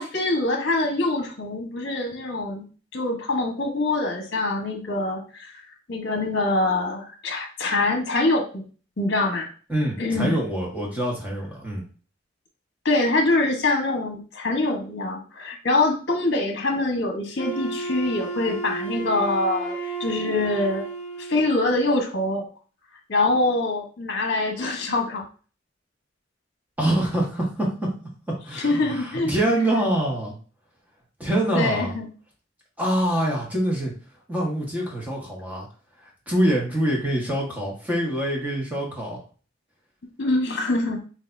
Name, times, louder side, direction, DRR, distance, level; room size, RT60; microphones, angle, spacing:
voice 1, 0.0-2.6 2.9-5.5 5.9-8.6 9.0-9.5 10.0-10.4 12.8-20.8 21.2-22.4 23.1-25.2 28.5-29.3 31.5-32.1 40.2-41.0, left 2 dB, 60° left, 2 dB, 1.1 m, -24 dB
voice 2, 9.7-11.8 26.8-27.9 28.3-30.3 31.2-31.9 32.8-33.9 34.3-35.7 36.0-39.2, right 1 dB, 10° right, -2 dB, 1.3 m, -25 dB
Wind instrument woodwind instrument, 17.4-21.5, right 3 dB, 40° left, 0.9 m, -32 dB
6.5 x 2.6 x 2.6 m, 0.39 s
head